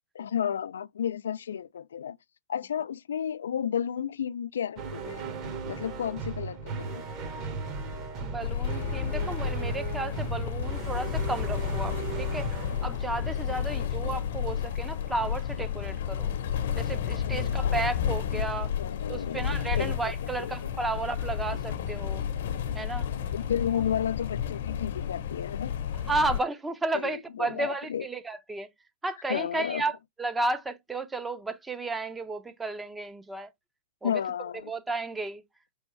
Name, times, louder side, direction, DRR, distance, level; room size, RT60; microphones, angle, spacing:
voice 1, 0.1-2.2 2.5-5.2 5.7-7.0 17.3-17.8 18.8-19.4 19.8-20.1 20.4-20.7 23.3-25.8 26.9-28.1 29.3-29.8 34.0-34.7, left 9 dB, 85° left, 0.3 m, -32 dB
sound 1, 4.8-14.2, right 4 dB, 35° right, 1.3 m, -37 dB
voice 2, 8.2-12.5 12.8-16.3 16.7-18.7 19.1-22.2 22.7-23.1 26.1-28.7 29.0-33.5 34.0-34.1 34.7-35.4, right 2 dB, 10° right, 0.6 m, -33 dB
sound 2, 8.4-26.4, left 9 dB, 65° left, 0.8 m, -31 dB
4.4 x 3.4 x 3.1 m
hypercardioid pair, 140°, 0 cm